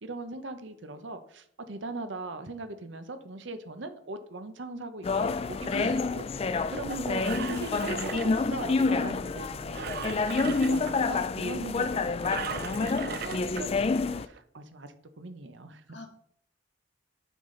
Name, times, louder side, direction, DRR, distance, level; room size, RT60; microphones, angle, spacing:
voice 1, 0.0-6.2 6.7-15.8, right 2 dB, 70° right, 9 dB, 0.8 m, -40 dB
sound 1, 5.0-14.2, left 4 dB, 30° left, 0.3 m, -28 dB
voice 2, 5.7-6.0 11.5-11.7 15.9-16.1, right 1 dB, 60° left, 4 dB, 1.3 m, -39 dB
Engine, 6.9-8.8 9.7-10.9 12.2-13.6 14.3-14.4, right 7 dB, 50° right, 0.4 m, -38 dB
8.4 x 5.7 x 3.9 m, 0.67 s
head